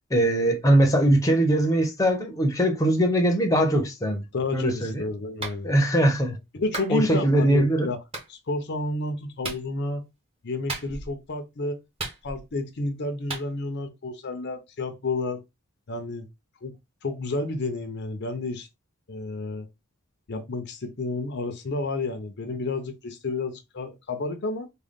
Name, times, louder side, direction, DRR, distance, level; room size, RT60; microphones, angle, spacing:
voice 1, 0.1-4.2 4.5-5.0 5.6-6.4 6.9-7.9, right 1 dB, 15° left, 0.7 m, -21 dB
voice 2, 4.3-5.7 6.5-8.0 8.3-10.0 10.4-11.8 12.2-15.4 15.9-16.3 16.6-16.7 17.0-18.7 19.1-19.7 20.3-24.7, left 2 dB, 55° left, 0.6 m, -30 dB
Clapping, 5.4-5.6 6.7-6.9 8.1-8.3 9.4-9.7 10.7-11.2 12.0-12.6 13.3-13.5, right 3 dB, 25° right, 1.0 m, -34 dB
3.7 x 2.2 x 3.5 m
head